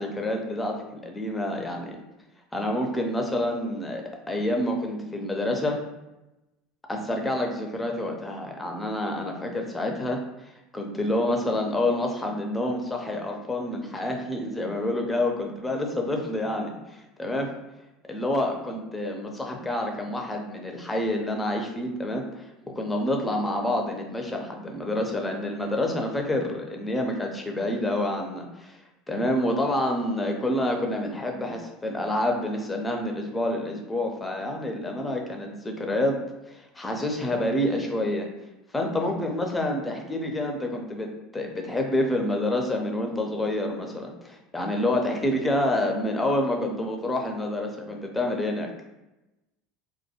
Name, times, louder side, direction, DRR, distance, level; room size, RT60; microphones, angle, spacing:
voice 1, 0.0-2.0 2.5-5.8 6.9-10.2 10.7-17.5 18.1-22.5 22.8-28.8 29.1-36.2 36.5-38.3 38.7-41.1 41.3-48.7, left 1 dB, 15° left, 2 dB, 0.5 m, -28 dB
2.3 x 2.2 x 2.8 m, 0.98 s
hypercardioid pair, 90°, 0 cm